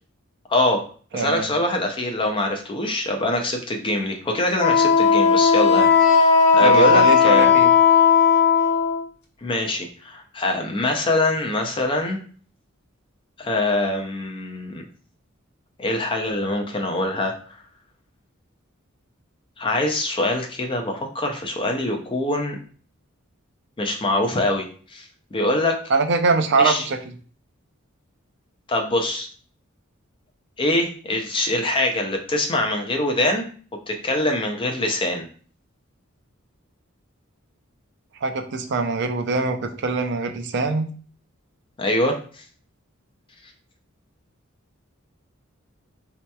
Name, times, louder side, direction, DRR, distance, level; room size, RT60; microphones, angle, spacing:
voice 1, 0.5-0.8 1.1-7.5 9.4-12.2 13.4-14.8 15.8-17.3 19.6-22.6 23.8-25.8 26.6-26.9 28.7-29.3 30.6-33.5 33.9-35.3 41.8-42.4, left 1 dB, 25° left, 3 dB, 0.4 m, -24 dB
voice 2, 1.1-1.5 6.6-7.7 25.9-27.0 38.2-40.9, right 3 dB, 55° right, 7 dB, 0.5 m, -22 dB
Wind instrument woodwind instrument, 4.6-9.0, left 6 dB, 50° left, 1.1 m, -16 dB
4.2 x 2.8 x 2.2 m, 0.43 s
head